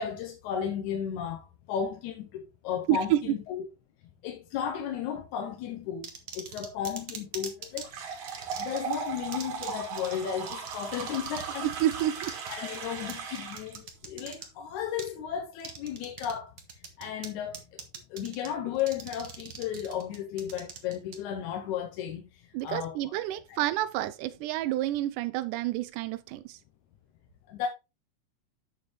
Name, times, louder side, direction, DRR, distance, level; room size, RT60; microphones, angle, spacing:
voice 1, 0.0-3.6 4.2-7.9 8.6-11.7 12.5-16.5 17.0-17.8 18.1-23.2 23.5-23.6 27.5-27.7, left 9 dB, 80° left, 2.2 m, -34 dB
voice 2, 2.9-3.2 11.8-12.3 22.5-26.6, right 13 dB, 90° right, 2.1 m, -29 dB
sound 1, 6.0-7.9 8.3-9.0 9.3-9.7 10.0-10.1 10.5-11.5 11.7-14.5 15.0-15.1 15.6-16.3 16.6-17.3 17.5-18.5 18.8-21.2, right 6 dB, 50° right, 1.4 m, -41 dB
sound 2, 7.8-13.8, right 6 dB, 70° right, 3.1 m, -37 dB
8.8 x 6.5 x 3.2 m
omnidirectional pair, 3.6 m